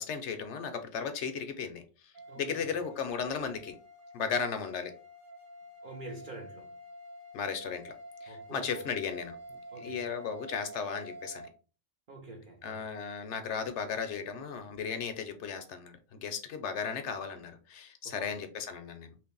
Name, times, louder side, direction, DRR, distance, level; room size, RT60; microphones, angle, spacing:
voice 1, 0.0-3.8 4.1-4.9 7.3-7.9 8.2-9.4 9.8-11.5 12.6-19.1, left 6 dB, 70° left, 0.8 m, -36 dB
sound 1, 2.1-11.5, equal, 70° right, 1.0 m, -48 dB
voice 2, 2.3-2.8 5.8-6.8 8.3-9.0 9.7-10.3 12.1-12.9 18.0-18.3, right 2 dB, 55° right, 0.6 m, -47 dB
3.1 x 2.6 x 3.7 m
omnidirectional pair, 1.4 m